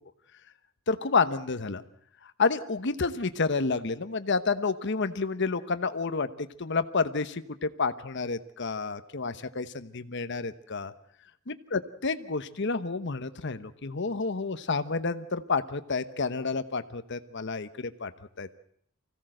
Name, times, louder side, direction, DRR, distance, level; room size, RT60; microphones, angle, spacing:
voice 1, 0.9-1.8 2.4-6.3 6.6-10.9 11.5-18.1 18.4-18.6, left 4 dB, 60° left, 12 dB, 1.0 m, -29 dB
25.0 x 16.5 x 7.7 m, 0.68 s
head